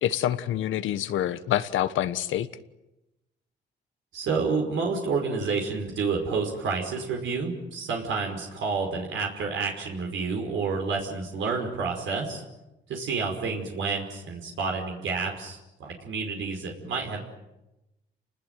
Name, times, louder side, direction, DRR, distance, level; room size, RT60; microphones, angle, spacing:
voice 1, 0.0-2.5, left 12 dB, 80° left, 13 dB, 1.4 m, -26 dB
voice 2, 4.1-12.4 12.9-17.3, right 4 dB, 75° right, 1 dB, 5.3 m, -29 dB
29.5 x 20.0 x 9.3 m, 0.96 s
cardioid pair, 90°, 20 cm